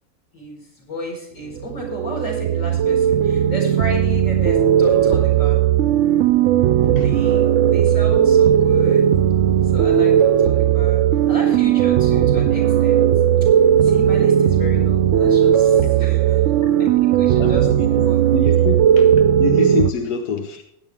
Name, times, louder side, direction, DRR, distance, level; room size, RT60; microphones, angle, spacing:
voice 1, 0.3-5.6 6.9-9.1 9.6-13.1 13.8-16.9 17.1-18.2, equal, 55° left, -2 dB, 5.1 m, -32 dB
sound 1, 1.5-19.9, right 9 dB, 65° right, 0.8 m, -16 dB
voice 2, 17.4-17.9 18.3-19.1 19.4-20.6, left 6 dB, 90° left, 7 dB, 1.4 m, -25 dB
16.0 x 10.5 x 3.6 m, 0.78 s
omnidirectional pair, 1.6 m